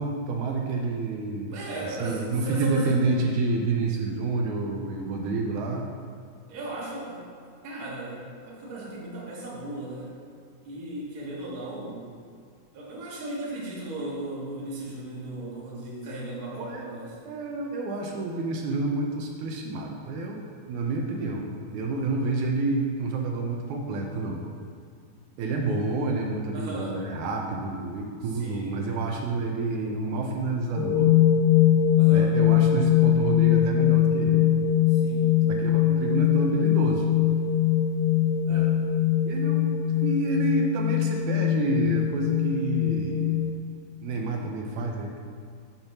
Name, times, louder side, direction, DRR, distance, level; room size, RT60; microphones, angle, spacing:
voice 1, 0.0-1.5 1.9-5.8 16.6-16.8 17.3-24.4 25.4-31.1 32.1-34.5 35.5-37.0 38.5-38.7 39.3-39.6 40.0-43.4 44.0-45.2, right 3 dB, 80° right, 1 dB, 2.0 m, -29 dB
voice 2, 1.5-3.0 6.5-7.3 7.6-10.1 10.6-12.1 12.7-17.2 26.5-27.0 28.2-28.8 32.0-32.4 34.9-35.3 38.5-38.7, right 2 dB, 45° right, -5 dB, 1.3 m, -36 dB
sound 1, 30.7-43.5, left 10 dB, 65° left, 2.4 m, -22 dB
6.9 x 4.1 x 5.8 m, 2.2 s
omnidirectional pair, 3.5 m